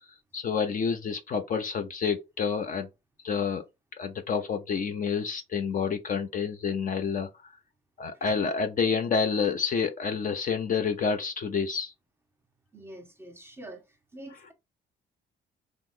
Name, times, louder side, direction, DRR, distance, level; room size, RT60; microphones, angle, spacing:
voice 1, 0.3-2.9 3.2-3.6 4.0-7.5 8.0-11.9 14.3-14.5, left 6 dB, 40° left, 0.5 m, -28 dB
voice 2, 12.7-13.9 14.1-14.5, right 1 dB, 10° right, 0.9 m, -45 dB
2.9 x 2.0 x 3.6 m
cardioid pair, 90°, 20 cm